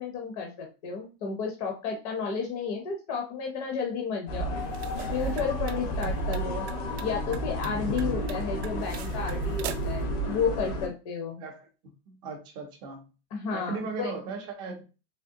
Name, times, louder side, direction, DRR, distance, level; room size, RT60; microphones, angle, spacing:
voice 1, 0.0-4.5 5.1-6.7 7.0-11.4 13.3-14.1, left 6 dB, 35° left, 1 dB, 0.6 m, -32 dB
sound 1, 4.3-10.9, right 1 dB, 85° left, 1.4 m, -31 dB
sound 2, 4.6-10.0, right 10 dB, 90° right, 0.5 m, -43 dB
voice 2, 11.4-11.7 12.1-13.0 13.5-14.8, right 4 dB, 15° right, 1 dB, 0.4 m, -37 dB
3.5 x 3.0 x 2.6 m, 0.31 s
supercardioid pair, 180°, 31 cm